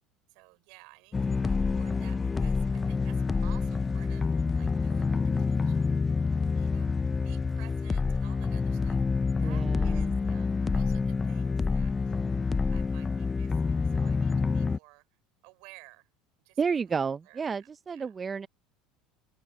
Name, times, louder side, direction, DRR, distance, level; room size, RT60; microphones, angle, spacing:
voice 1, 0.3-4.3 4.6-6.1 6.6-6.9 7.2-9.0 9.4-12.2 12.7-15.1 15.4-16.1 16.4-18.1, right 29 dB, 70° right, 5.6 m, -55 dB
sound 1, 1.1-14.8, left 4 dB, 20° left, 0.5 m, -27 dB
voice 2, 9.4-10.2 16.6-18.5, right 5 dB, 30° right, 0.6 m, -31 dB
open air
hypercardioid pair, 80°, 0 cm